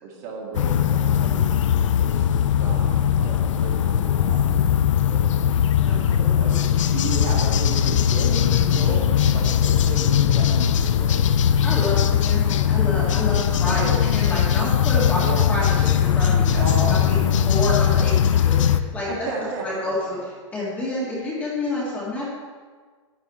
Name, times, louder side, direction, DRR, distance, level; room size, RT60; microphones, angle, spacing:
voice 1, 0.0-4.8 5.1-5.2 6.3-6.5 6.9-11.3 13.6-14.1 15.1-15.5 16.5-17.5 19.1-20.2, right 3 dB, 35° right, -2 dB, 1.8 m, -34 dB
sound 1, 0.5-18.8, left 9 dB, 75° left, 0.6 m, -20 dB
voice 2, 5.8-6.6 11.6-13.8 14.1-15.2 15.5-15.7 15.9-17.2 17.5-19.3 19.6-20.2 20.5-22.3, left 2 dB, 10° left, -6 dB, 1.8 m, -29 dB
10.0 x 9.6 x 4.3 m, 1.5 s
supercardioid pair, 175°, 16 cm